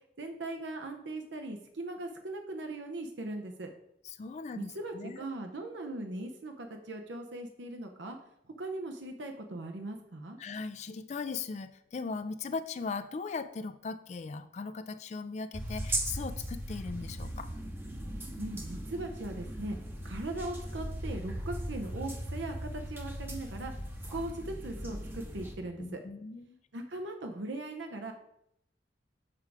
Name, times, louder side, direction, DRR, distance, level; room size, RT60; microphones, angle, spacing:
voice 1, 0.2-3.7 4.6-8.2 8.6-10.4 18.4-19.8 20.0-23.7 24.1-26.0 26.7-28.1, right 2 dB, 80° right, 4 dB, 0.8 m, -39 dB
voice 2, 4.0-5.2 10.4-17.5 25.8-26.6, left 4 dB, 40° left, 11 dB, 0.3 m, -39 dB
sound 1, 15.5-25.6, right 1 dB, 10° right, 0.7 m, -38 dB
7.4 x 4.7 x 4.9 m, 0.78 s
head